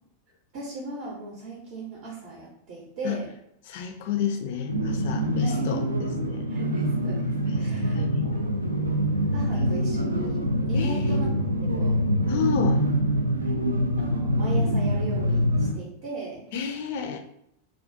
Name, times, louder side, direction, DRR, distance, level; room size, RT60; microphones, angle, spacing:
voice 1, 0.5-3.3 5.4-5.6 6.5-8.4 9.3-11.3 11.6-12.0 13.4-13.5 14.0-16.4, right 3 dB, 45° right, -4 dB, 0.7 m, -37 dB
voice 2, 3.7-6.5 7.5-8.4 9.5-9.6 10.7-11.0 12.3-12.8 16.5-17.2, left 7 dB, 50° left, 6 dB, 0.3 m, -30 dB
sound 1, 4.7-15.7, equal, 80° right, 0.3 m, -25 dB
2.3 x 2.3 x 2.5 m, 0.75 s
figure-of-eight pair, 90°, 0 cm